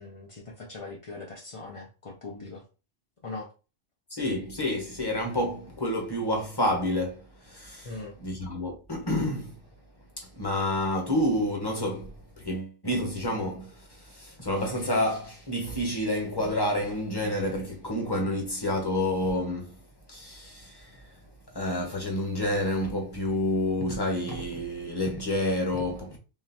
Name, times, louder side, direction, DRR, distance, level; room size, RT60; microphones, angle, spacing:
voice 1, 0.0-2.6 3.2-3.5 7.8-8.1, left 3 dB, 40° left, 0.5 m, -40 dB
voice 2, 4.1-7.9 8.2-9.6 10.2-19.8 20.1-21.2 21.5-26.2, left 1 dB, 20° left, 0.9 m, -29 dB
3.8 x 3.1 x 2.9 m
omnidirectional pair, 1.3 m